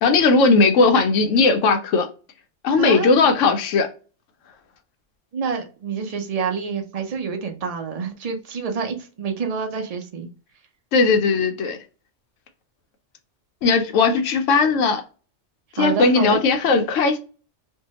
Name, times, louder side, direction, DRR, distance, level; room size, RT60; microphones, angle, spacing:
voice 1, 0.0-2.1 2.6-3.9 10.9-11.8 13.6-15.0 15.7-17.2, left 4 dB, 85° left, 1.0 m, -18 dB
voice 2, 2.8-3.1 5.3-10.3 15.8-16.4, right 5 dB, 45° right, 0.5 m, -27 dB
2.7 x 2.2 x 2.8 m
omnidirectional pair, 1.3 m